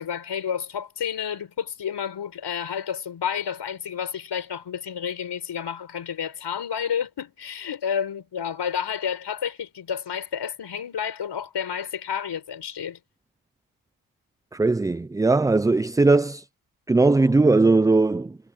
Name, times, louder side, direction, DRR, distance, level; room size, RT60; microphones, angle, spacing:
voice 1, 0.0-13.0, left 8 dB, 70° left, 5.4 m, -30 dB
voice 2, 14.5-16.4 16.9-18.4, right 3 dB, 10° right, 0.3 m, -19 dB
cardioid pair, 80°, 43 cm